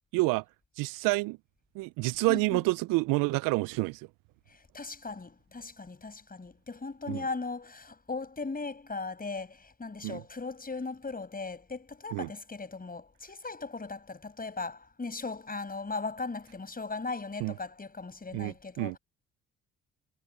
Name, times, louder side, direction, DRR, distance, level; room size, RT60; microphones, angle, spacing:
voice 1, 0.1-0.4 0.8-1.4 1.7-4.1 7.1-7.3 10.0-10.2 12.1-12.3 17.4-17.5 18.3-19.0, right 23 dB, 70° right, 0.9 m, -28 dB
voice 2, 2.3-2.6 4.5-19.0, left 3 dB, 25° left, 7.0 m, -38 dB
hypercardioid pair, 55°, 35 cm